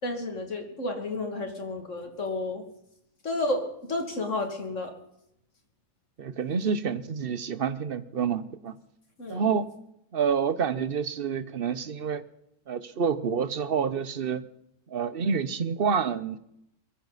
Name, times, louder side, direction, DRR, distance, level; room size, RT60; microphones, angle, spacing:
voice 1, 0.0-2.6 3.2-4.9 9.2-9.5, left 2 dB, 50° left, 3 dB, 2.8 m, -31 dB
voice 2, 6.2-8.8 9.3-9.7 10.1-12.2 12.7-14.4 14.9-16.4, right 6 dB, 45° right, 14 dB, 0.8 m, -28 dB
22.5 x 14.5 x 4.1 m, 0.76 s
omnidirectional pair, 1.7 m